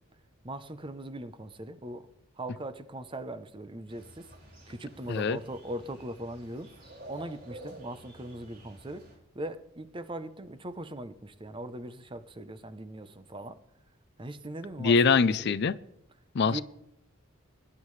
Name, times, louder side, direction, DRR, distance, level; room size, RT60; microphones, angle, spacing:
voice 1, 0.4-2.1 2.4-4.3 4.7-9.1 9.3-13.6 14.2-15.6 16.5-16.6, right 1 dB, 25° right, 0.7 m, -40 dB
sound 1, 3.9-9.1, right 1 dB, 50° right, 5.8 m, -50 dB
voice 2, 14.8-15.8 16.3-16.6, left 5 dB, 55° left, 0.4 m, -23 dB
21.5 x 10.5 x 3.2 m
head